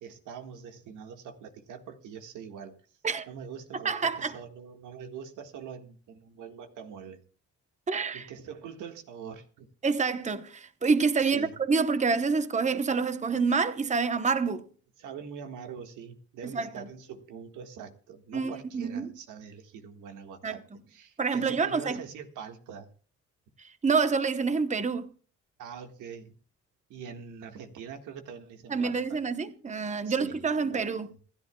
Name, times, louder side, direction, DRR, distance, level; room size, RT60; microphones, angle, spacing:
voice 1, 0.0-2.8 3.3-7.2 8.1-9.7 11.2-11.5 15.0-20.6 20.9-22.9 25.6-26.4 26.9-29.2 30.0-31.1, right 7 dB, 90° right, 1.8 m, -44 dB
voice 2, 3.8-4.3 7.9-8.3 9.8-14.6 16.5-16.9 18.3-19.1 20.4-20.6 21.2-22.0 23.6-25.1 28.7-31.1, right 5 dB, 25° right, 1.0 m, -27 dB
27.0 x 10.5 x 2.3 m
cardioid pair, 90°, 30 cm